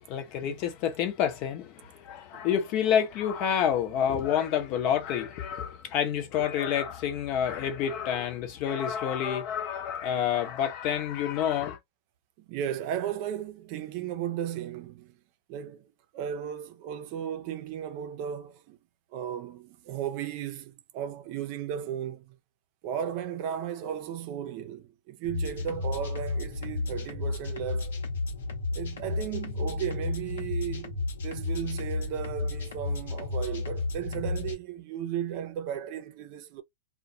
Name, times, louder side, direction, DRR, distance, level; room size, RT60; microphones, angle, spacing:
voice 1, 0.1-11.8, left 9 dB, 45° left, 0.7 m, -28 dB
voice 2, 12.4-15.2 15.5-18.8 19.1-22.4 22.8-27.9 28.7-36.6, right 9 dB, 50° right, 0.5 m, -35 dB
sound 1, 25.2-34.5, left 3 dB, 75° left, 0.8 m, -32 dB
2.2 x 2.2 x 2.6 m
hypercardioid pair, 115°, 0 cm